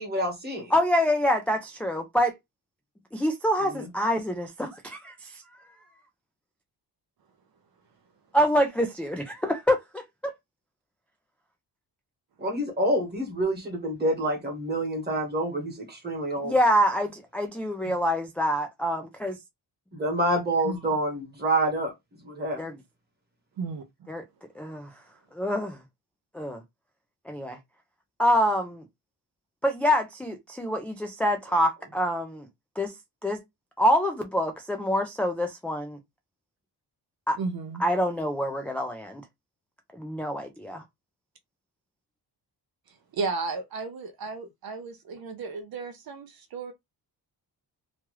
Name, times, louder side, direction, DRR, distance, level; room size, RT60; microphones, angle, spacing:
voice 1, 0.0-0.7 3.6-3.9 12.4-16.5 19.9-21.9 22.2-22.6, right 1 dB, 25° right, 1.3 m, -27 dB
voice 2, 0.7-2.3 3.1-5.4 8.3-10.3 16.4-19.4 22.6-22.8 24.1-24.2 24.6-24.9 25.3-25.8 26.3-26.6 27.3-27.6 28.2-28.8 29.6-32.5 32.8-32.9 33.2-33.4 33.8-36.0 37.3-37.4 37.8-39.2 39.9-40.8, equal, 5° left, 0.3 m, -26 dB
voice 3, 37.4-37.8 43.1-46.7, right 4 dB, 60° right, 0.6 m, -33 dB
3.0 x 2.3 x 3.0 m
wide cardioid pair, 160°, 42 cm